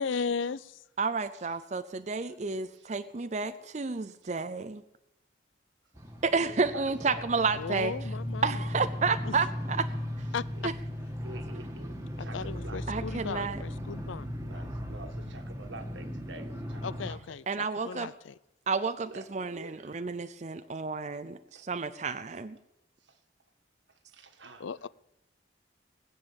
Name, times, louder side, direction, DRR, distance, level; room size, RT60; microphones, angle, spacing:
voice 1, 0.0-0.8 7.5-8.5 9.3-9.4 10.3-10.7 12.2-14.3 16.8-18.4 24.6-24.9, left 5 dB, 80° left, 0.5 m, -36 dB
voice 2, 1.0-4.8 6.2-7.9 8.4-9.8 10.6-10.7 12.9-13.6 17.5-18.1 18.7-22.6, right 4 dB, 35° right, 0.5 m, -31 dB
sound 1, 5.9-17.1, equal, 15° right, 1.6 m, -37 dB
voice 3, 6.3-7.5 10.5-10.7 11.2-13.1 14.4-17.2 19.0-20.0 21.5-21.7 23.0-23.2 24.1-24.6, right 2 dB, 70° right, 1.8 m, -47 dB
20.0 x 7.2 x 8.9 m
head